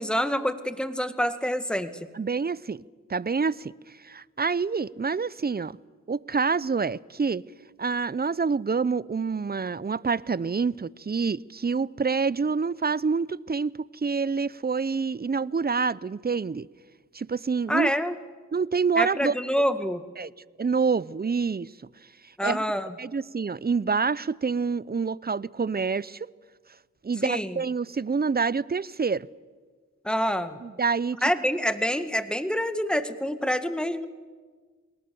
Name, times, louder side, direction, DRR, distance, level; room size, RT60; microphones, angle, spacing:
voice 1, 0.0-1.9 17.7-18.1 19.0-20.0 22.4-22.9 27.2-27.6 30.0-30.6 31.2-34.1, equal, 5° left, 1.8 m, -26 dB
voice 2, 2.1-2.8 3.1-5.8 6.1-7.4 7.8-16.7 17.1-17.9 18.5-19.3 20.2-20.3 20.6-21.7 22.4-22.6 23.0-26.3 27.0-29.3 30.6-31.2, right 5 dB, 30° right, 0.6 m, -27 dB
29.5 x 19.5 x 7.0 m
cardioid pair, 40°, 31 cm